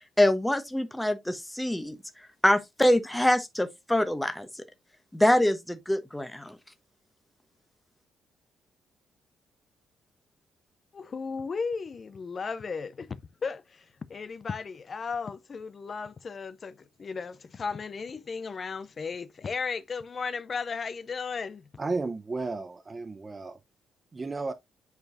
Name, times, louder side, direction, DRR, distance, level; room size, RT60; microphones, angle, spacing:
voice 1, 0.2-2.0 2.4-4.5 5.1-6.6, left 1 dB, 5° left, 1.0 m, -24 dB
voice 2, 10.9-21.6, left 5 dB, 40° left, 0.5 m, -35 dB
voice 3, 21.8-23.6 24.1-24.5, right 3 dB, 25° right, 0.7 m, -33 dB
8.0 x 4.6 x 2.5 m
cardioid pair, 90°, 0 cm